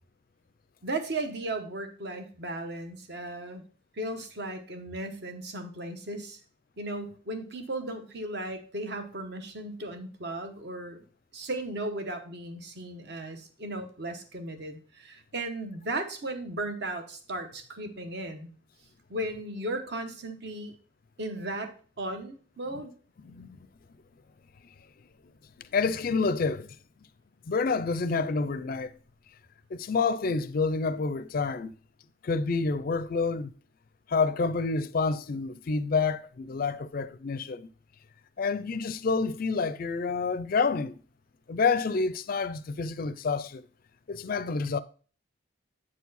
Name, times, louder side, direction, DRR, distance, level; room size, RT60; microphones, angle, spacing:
voice 1, 0.8-3.6 4.0-6.4 6.8-11.0 11.3-18.5 19.1-20.7 21.2-22.9, right 1 dB, 55° right, 1.1 m, -36 dB
voice 2, 23.2-23.6 25.7-26.7 27.5-28.9 29.7-31.7 32.2-33.5 34.1-37.7 38.4-41.0 41.5-43.6 44.1-44.8, left 4 dB, 45° left, 0.4 m, -28 dB
8.6 x 4.6 x 4.0 m
head